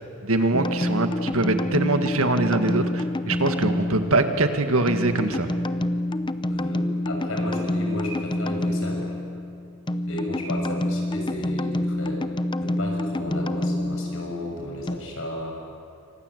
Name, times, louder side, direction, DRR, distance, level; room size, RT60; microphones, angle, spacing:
voice 1, 0.2-5.5, right 2 dB, 65° right, 7 dB, 2.0 m, -23 dB
sound 1, 0.5-15.0, left 1 dB, 20° left, 0.7 m, -27 dB
voice 2, 6.5-9.2 10.1-12.3 12.6-15.5, left 1 dB, 60° left, 1 dB, 6.8 m, -33 dB
28.0 x 25.0 x 8.2 m, 2.6 s
head